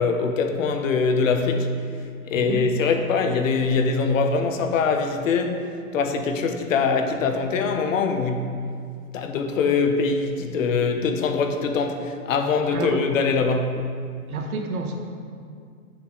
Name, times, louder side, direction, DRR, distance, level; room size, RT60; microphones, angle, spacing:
voice 1, 0.0-1.7 2.2-5.6 5.9-8.5 9.1-13.9, left 4 dB, 60° left, 6 dB, 0.9 m, -23 dB
voice 2, 12.7-13.0 14.3-15.0, right 4 dB, 70° right, 3 dB, 1.4 m, -29 dB
9.5 x 6.4 x 3.8 m, 2.2 s
hypercardioid pair, 165°, 44 cm